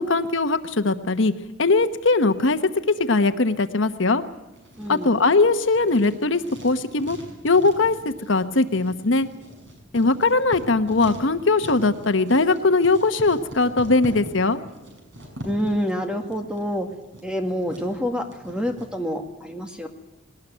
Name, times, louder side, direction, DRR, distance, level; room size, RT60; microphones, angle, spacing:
voice 1, 0.0-1.3 1.6-2.6 3.0-4.2 4.9-7.2 7.4-9.3 9.9-14.6, left 3 dB, 75° left, 10 dB, 1.1 m, -20 dB
Writing, 4.5-18.9, equal, 70° right, 6.4 m, -42 dB
voice 2, 4.8-5.2 15.4-16.9 17.2-19.9, equal, 5° right, 4 dB, 2.0 m, -27 dB
20.0 x 18.5 x 9.1 m, 1.0 s
head